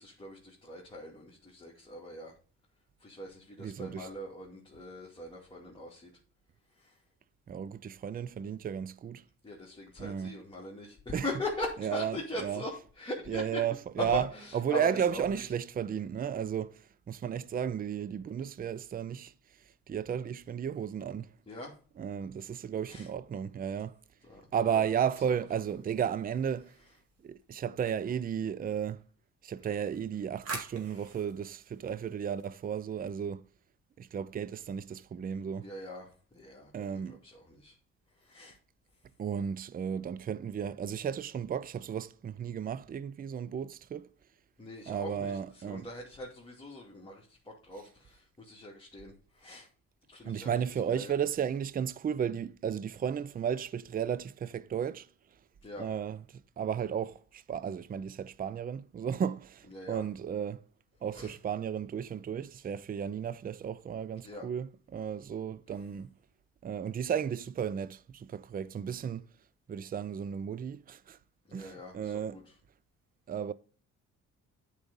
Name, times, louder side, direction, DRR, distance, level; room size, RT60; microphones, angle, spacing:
voice 1, 0.0-2.3 3.0-6.1 6.8-6.9 9.4-13.6 14.0-15.4 21.5-21.7 22.9-23.1 24.3-24.4 24.7-24.8 35.6-37.7 38.2-38.6 44.6-49.7 50.1-50.6 50.9-51.1 55.6-55.9 59.7-60.1 61.1-61.3 64.2-64.5 71.5-72.4, left 2 dB, 15° left, 2.6 m, -41 dB
voice 2, 3.6-4.1 7.5-9.2 10.0-10.4 11.1-11.3 11.8-12.6 13.3-14.3 14.5-19.3 19.9-21.3 22.0-24.0 24.5-26.7 27.2-29.0 29.4-33.4 34.0-35.7 36.7-37.2 39.2-44.1 44.9-45.9 50.2-55.1 55.8-60.6 61.0-66.1 66.6-69.3 69.7-71.2 71.5-72.4 73.3-73.5, right 8 dB, 30° right, 0.5 m, -34 dB
sound 1, 25.7-27.4 29.7-33.0, right 3 dB, 50° right, 2.5 m, -47 dB
8.9 x 4.9 x 5.4 m
cardioid pair, 90°, 30 cm